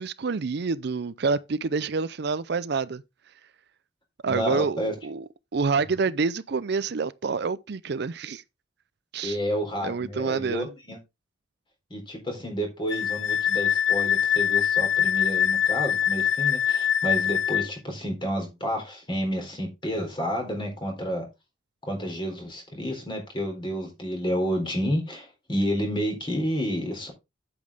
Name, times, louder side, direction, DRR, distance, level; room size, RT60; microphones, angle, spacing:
voice 1, 0.0-3.0 4.2-8.4 9.1-9.4 9.8-10.7, right 4 dB, 60° right, 0.5 m, -27 dB
voice 2, 4.3-4.9 9.2-11.0 11.9-21.3 21.8-27.1, equal, 25° left, 3.9 m, -30 dB
Wind instrument woodwind instrument, 12.9-17.7, left 9 dB, 80° left, 0.6 m, -23 dB
8.6 x 8.4 x 3.5 m
head